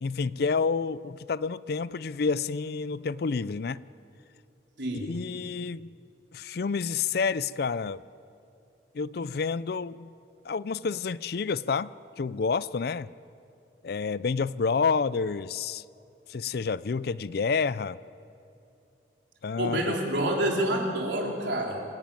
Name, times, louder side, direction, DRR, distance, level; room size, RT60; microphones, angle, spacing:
voice 1, 0.0-3.8 5.0-5.9 6.3-8.0 8.9-10.1 10.4-11.9 12.2-13.1 13.8-15.8 16.3-18.0 19.4-20.0, left 5 dB, 55° left, 18 dB, 0.4 m, -29 dB
voice 2, 4.8-5.1 19.6-21.8, right 1 dB, 75° right, -1 dB, 3.8 m, -28 dB
26.0 x 12.5 x 9.1 m, 2.7 s
head